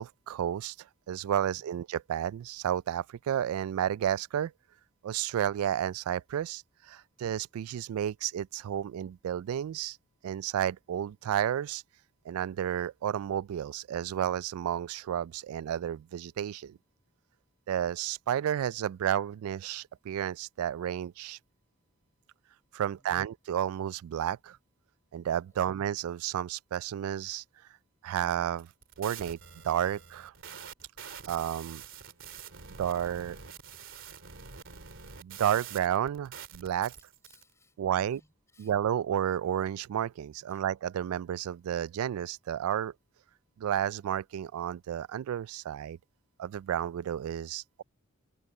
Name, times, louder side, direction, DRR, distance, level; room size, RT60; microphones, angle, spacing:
voice 1, 0.0-4.5 5.0-10.0 10.2-11.8 12.3-16.8 17.7-21.4 22.7-24.6 25.1-27.4 28.0-28.7 29.0-29.4 29.6-30.3 31.3-31.8 32.8-33.4 35.2-36.9 37.8-38.2 38.6-42.9 43.6-46.0 46.4-47.8, right 10 dB, 90° right, 0.3 m, -31 dB
voice 2, 22.8-23.1 25.5-25.6 31.4-31.5 32.1-32.8 37.2-38.7 40.5-40.6, left 3 dB, 15° left, 6.3 m, -67 dB
sound 1, 28.5-37.4, right 7 dB, 60° right, 2.6 m, -46 dB
head